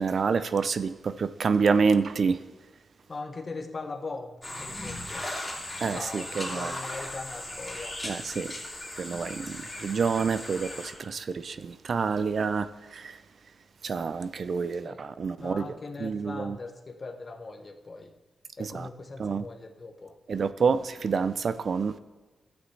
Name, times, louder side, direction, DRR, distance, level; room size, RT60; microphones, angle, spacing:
voice 1, 0.0-2.4 5.8-6.7 8.0-8.5 9.0-13.2 13.8-16.6 18.6-18.9 19.2-19.4 20.3-22.0, right 5 dB, 55° right, 0.4 m, -28 dB
voice 2, 3.1-5.3 5.9-8.0 14.7-15.1 15.4-18.1 18.6-20.2, left 3 dB, 35° left, 0.9 m, -40 dB
sound 1, 4.4-10.9, left 1 dB, 10° left, 2.6 m, -37 dB
13.0 x 8.6 x 3.2 m
cardioid pair, 105°, 0 cm